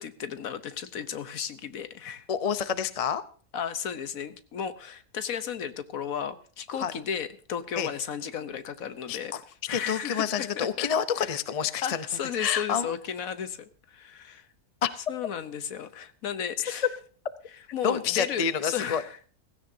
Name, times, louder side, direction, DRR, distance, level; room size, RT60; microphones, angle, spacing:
voice 1, 0.0-2.3 3.5-9.3 9.7-10.3 10.5-10.9 11.2-11.4 11.8-14.5 15.1-16.9 17.7-19.3, left 8 dB, 65° left, 12 dB, 1.3 m, -34 dB
voice 2, 2.3-3.2 6.8-6.9 7.8-7.9 9.1-9.4 9.7-12.1 12.4-12.9 14.8-14.9 17.8-19.0, left 8 dB, 35° left, 13 dB, 0.6 m, -28 dB
16.5 x 16.0 x 2.7 m, 0.41 s
omnidirectional pair, 1.6 m